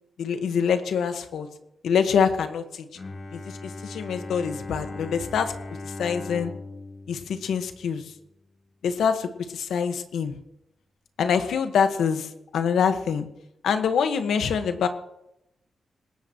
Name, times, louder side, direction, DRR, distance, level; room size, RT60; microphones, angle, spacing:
voice 1, 0.2-1.5 1.8-2.9 3.3-5.5 5.8-6.5 7.1-8.0 8.8-10.4 11.2-12.3 12.5-13.3 13.6-14.9, left 7 dB, 90° left, 7 dB, 1.5 m, -25 dB
Bowed string instrument, 2.9-8.2, left 2 dB, 40° left, 5.4 m, -39 dB
26.5 x 14.0 x 3.1 m, 0.84 s
cardioid pair, 95°, 0 cm